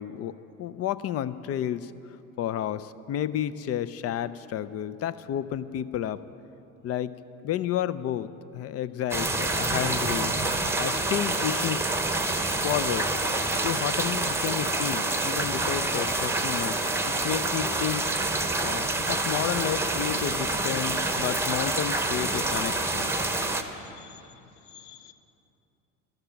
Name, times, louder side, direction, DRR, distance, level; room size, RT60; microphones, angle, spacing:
voice 1, 0.0-1.9 2.4-6.2 6.8-7.1 7.4-10.3 10.8-11.9 12.6-13.2 13.6-18.1 18.6-23.1, left 11 dB, 35° left, 15 dB, 0.5 m, -31 dB
sound 1, 9.1-23.6, right 2 dB, 5° right, 0.9 m, -27 dB
voice 2, 23.7-25.1, left 9 dB, 75° left, 10 dB, 0.9 m, -51 dB
13.0 x 12.0 x 5.9 m, 2.8 s
hypercardioid pair, 70°, 42 cm